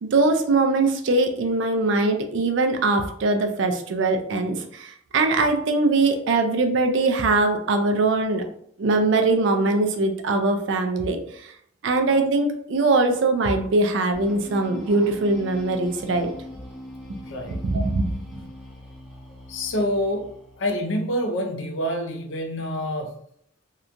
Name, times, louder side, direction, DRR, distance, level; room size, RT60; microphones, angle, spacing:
voice 1, 0.0-8.4 8.8-11.5 11.8-16.3 17.6-18.5, right 3 dB, 65° right, 5 dB, 0.4 m, -22 dB
sound 1, 14.1-20.7, left 1 dB, ahead, 0.5 m, -42 dB
voice 2, 17.3-17.6 19.5-20.3 20.6-23.1, equal, 70° left, 3 dB, 0.5 m, -27 dB
2.8 x 2.2 x 2.5 m, 0.68 s
head